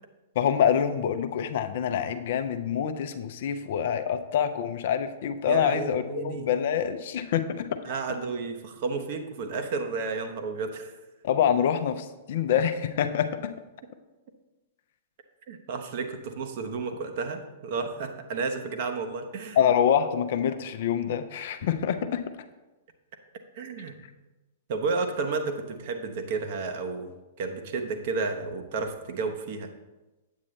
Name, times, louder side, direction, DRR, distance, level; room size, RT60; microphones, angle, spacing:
voice 1, 0.4-7.7 11.2-13.5 19.6-22.2, left 8 dB, 50° left, 10 dB, 0.6 m, -26 dB
voice 2, 5.5-6.5 7.8-11.0 15.5-19.6 23.5-24.0 24.7-29.7, right 4 dB, 50° right, 6 dB, 0.9 m, -32 dB
8.5 x 8.4 x 3.2 m, 1.1 s
figure-of-eight pair, 105°, 0 cm